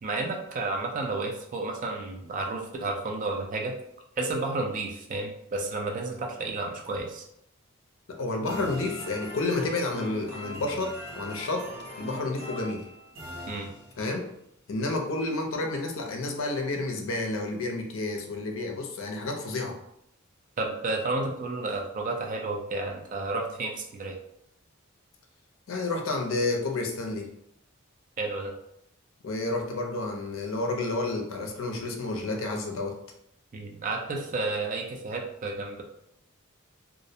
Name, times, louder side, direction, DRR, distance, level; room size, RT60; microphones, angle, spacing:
voice 1, 0.0-3.7 4.2-7.3 13.5-13.7 20.6-24.1 28.2-28.5 33.5-35.8, right 3 dB, 40° right, 2 dB, 0.4 m, -31 dB
voice 2, 8.1-11.7 12.0-12.8 14.0-14.3 14.7-19.7 25.7-27.3 29.2-33.0, left 2 dB, 65° left, 2 dB, 0.5 m, -30 dB
sound 1, 8.5-14.2, equal, 65° right, 1.0 m, -41 dB
2.4 x 2.0 x 2.6 m, 0.76 s
head